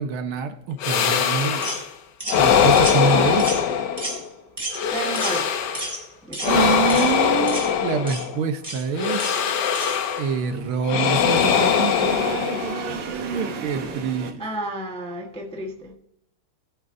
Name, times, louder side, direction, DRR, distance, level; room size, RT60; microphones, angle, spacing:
voice 1, 0.0-1.8 2.4-3.5 6.4-9.3 10.2-14.4, right 5 dB, 75° right, 1.9 m, -26 dB
sound 1, 0.8-1.9 2.3-4.3 4.7-5.9 6.4-8.4 9.0-10.4 10.8-13.0, left 8 dB, 60° left, 1.3 m, -21 dB
sound 2, 1.6-1.8 2.2-2.4 2.8-3.0 3.4-3.7 4.0-4.2 4.6-4.8 5.1-5.4 5.7-6.0 6.3-6.6 6.9-7.1 7.5-7.7 8.1-8.3 8.6-8.8 9.2-9.4 9.8-10.0, right 1 dB, 15° right, 3.7 m, -31 dB
voice 2, 4.9-5.5 6.3-6.6 6.9-7.1 14.4-15.9, right 2 dB, 5° left, 0.7 m, -31 dB
sound 3, 7.8-14.3, right 3 dB, 90° right, 2.2 m, -35 dB
19.0 x 7.6 x 2.6 m
omnidirectional pair, 2.4 m